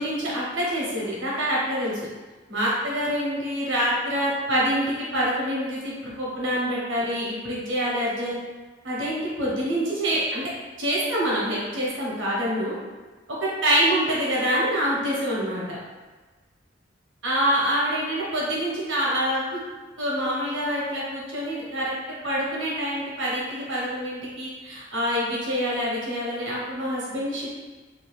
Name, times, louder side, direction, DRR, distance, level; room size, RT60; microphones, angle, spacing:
voice 1, 0.0-2.0 2.5-8.4 8.8-10.5 10.8-12.8 13.6-15.8 17.2-19.6 20.0-21.9 22.2-27.6, equal, 85° right, -5 dB, 1.0 m, -26 dB
2.8 x 2.4 x 3.0 m, 1.3 s
head